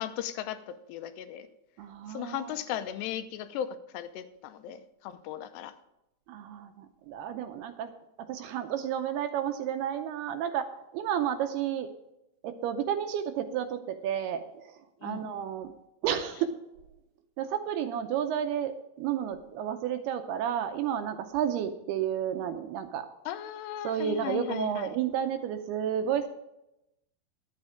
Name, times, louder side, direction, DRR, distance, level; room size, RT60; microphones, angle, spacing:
voice 1, 0.0-1.5 2.1-5.7 15.0-15.3 23.3-24.9, left 10 dB, 85° left, 10 dB, 2.8 m, -37 dB
voice 2, 1.8-2.6 6.3-7.9 8.2-11.9 12.4-15.7 16.0-16.6 17.4-23.1 23.8-26.3, right 9 dB, 80° right, 8 dB, 2.4 m, -31 dB
11.5 x 8.6 x 5.0 m, 0.87 s
omnidirectional pair, 5.0 m